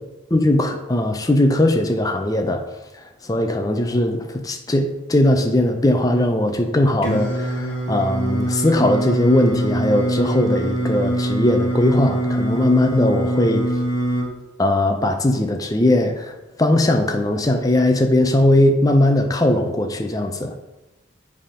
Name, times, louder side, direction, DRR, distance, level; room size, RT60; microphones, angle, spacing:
voice 1, 0.3-2.6 3.2-13.7 14.6-20.5, left 1 dB, 20° left, 5 dB, 0.5 m, -19 dB
Singing, 7.0-14.2, right 1 dB, 80° left, 1.4 m, -23 dB
7.9 x 3.6 x 4.9 m, 1.0 s
head